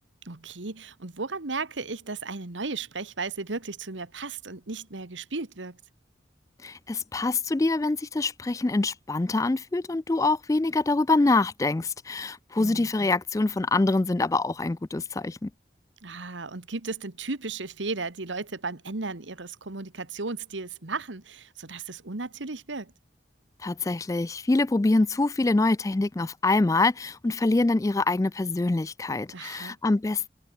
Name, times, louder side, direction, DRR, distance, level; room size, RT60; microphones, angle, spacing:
voice 1, 0.2-5.8 12.6-13.1 16.0-22.9 29.3-29.8, right 3 dB, 90° right, 1.6 m, -35 dB
voice 2, 6.6-15.5 23.6-30.3, left 2 dB, 20° left, 0.3 m, -25 dB
head